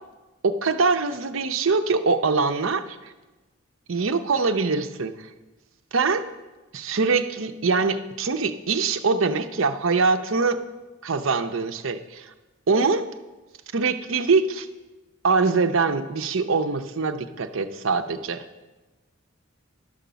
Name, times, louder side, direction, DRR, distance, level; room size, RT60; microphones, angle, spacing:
voice 1, 0.4-3.1 3.9-5.3 5.9-6.2 6.7-10.6 11.0-12.3 12.7-13.0 13.7-14.7 15.2-18.4, right 4 dB, 70° right, 9 dB, 0.6 m, -23 dB
12.0 x 5.1 x 6.8 m, 1.1 s
head